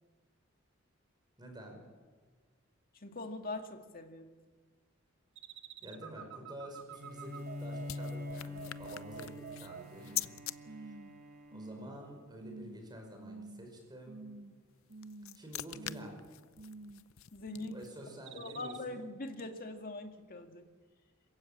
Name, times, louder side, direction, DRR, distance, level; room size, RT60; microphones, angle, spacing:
voice 1, 1.4-1.8 5.8-11.0 11.5-14.3 15.3-16.2 17.7-19.0, equal, 20° right, 2 dB, 5.3 m, -49 dB
voice 2, 3.0-4.3 17.3-17.8 18.3-20.6, left 2 dB, 45° left, 5 dB, 2.2 m, -42 dB
sound 1, 5.4-10.3 10.7-11.1 11.5-12.0 12.4-12.8 13.2-13.7 14.1-14.6 14.9-15.4 15.7-16.2 16.6-17.1 17.4-17.9 18.3-18.8, right 5 dB, 65° right, 1.2 m, -48 dB
sound 2, 6.9-10.6 14.7-18.1, left 13 dB, 85° left, 0.6 m, -45 dB
Bowed string instrument, 6.9-12.4, left 2 dB, 45° right, 3.3 m, -45 dB
27.0 x 15.5 x 8.8 m, 1.5 s
head